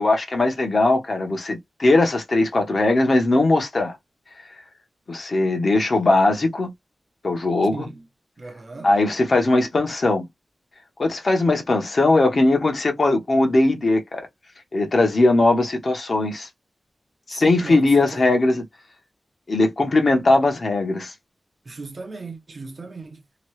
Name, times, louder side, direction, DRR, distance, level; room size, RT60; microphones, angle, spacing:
voice 1, 0.0-4.0 5.1-6.7 7.2-7.9 8.8-10.3 11.0-14.2 14.7-16.5 17.3-18.6 19.5-21.1, left 2 dB, 45° left, 0.9 m, -19 dB
voice 2, 7.6-8.0 8.4-8.9 17.3-18.3 21.6-23.2, right 3 dB, 40° right, 0.7 m, -37 dB
2.9 x 2.3 x 3.0 m
wide cardioid pair, 135°, 0 cm